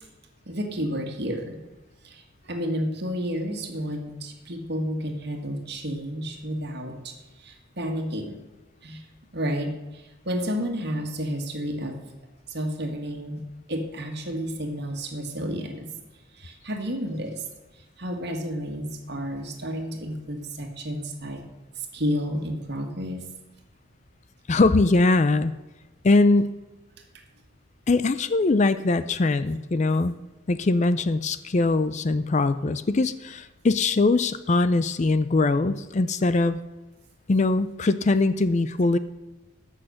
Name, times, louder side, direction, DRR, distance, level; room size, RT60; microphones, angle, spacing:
voice 1, 0.4-1.6 2.0-8.4 8.8-9.0 9.3-12.0 12.5-13.4 13.7-15.9 16.3-17.4 18.0-21.5 21.7-23.2, equal, 55° right, 4 dB, 1.8 m, -31 dB
voice 2, 24.5-25.5 26.0-26.5 27.9-30.1 30.5-36.6 37.3-39.0, left 3 dB, 35° left, 13 dB, 0.4 m, -22 dB
13.5 x 6.4 x 6.4 m, 1.1 s
head